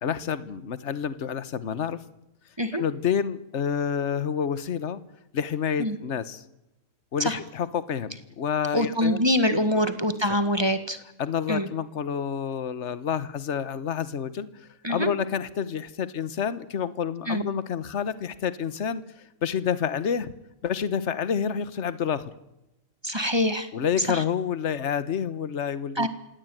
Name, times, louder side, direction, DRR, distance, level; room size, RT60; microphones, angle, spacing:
voice 1, 0.0-2.0 2.7-5.0 5.3-6.4 7.1-9.2 9.5-9.8 11.2-20.3 20.6-22.3 23.7-26.1, left 7 dB, 55° left, 15 dB, 1.4 m, -29 dB
voice 2, 8.7-11.0 11.5-11.7 14.8-15.1 17.3-17.5 23.0-23.7 24.1-24.2 26.0-26.1, equal, 20° right, 10 dB, 1.7 m, -24 dB
25.5 x 17.0 x 9.2 m, 0.93 s
omnidirectional pair, 1.5 m